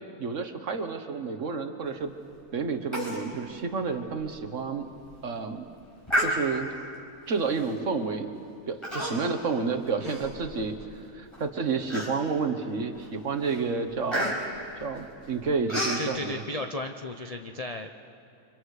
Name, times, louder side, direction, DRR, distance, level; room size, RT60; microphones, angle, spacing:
voice 1, 0.2-2.1 2.5-4.9 5.2-5.6 6.2-6.7 7.3-8.3 8.7-10.8 11.1-14.4 14.8-16.4, right 4 dB, 50° right, 7 dB, 1.4 m, -30 dB
Human voice, 2.9-3.2 3.6-3.7 4.2-4.3 4.8-5.1 6.1-6.8 7.6-7.8 8.8-9.4 9.8-10.8 11.3-11.4 11.9-12.5 12.9-13.2 13.4-16.1, equal, 15° left, 5.2 m, -31 dB
voice 2, 16.0-17.9, left 1 dB, 40° left, 5 dB, 0.5 m, -35 dB
30.0 x 25.0 x 4.9 m, 2.7 s
omnidirectional pair, 1.7 m